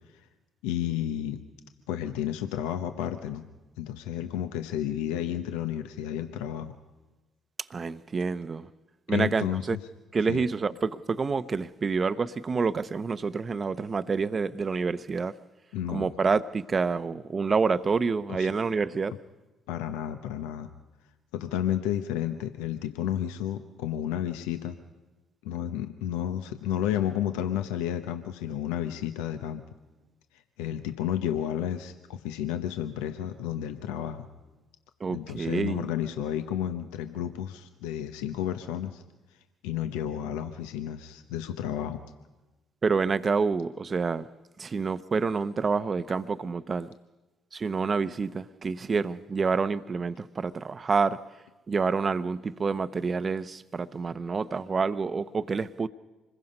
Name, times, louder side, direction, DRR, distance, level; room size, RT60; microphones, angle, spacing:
voice 1, 0.6-1.4 1.9-3.5 3.8-6.7 9.1-9.6 10.3-10.4 15.7-16.1 18.3-18.5 19.7-20.7 21.3-24.8 25.4-29.6 30.6-34.3 35.1-39.0 39.6-42.0, left 10 dB, 80° left, 0.9 m, -31 dB
voice 2, 7.7-8.7 9.1-9.8 10.1-15.3 15.9-19.1 35.0-35.9 42.8-44.3 44.6-46.9 47.5-51.2 51.7-55.9, right 4 dB, 40° right, 0.8 m, -28 dB
26.0 x 21.0 x 5.4 m
hypercardioid pair, 50°, 0 cm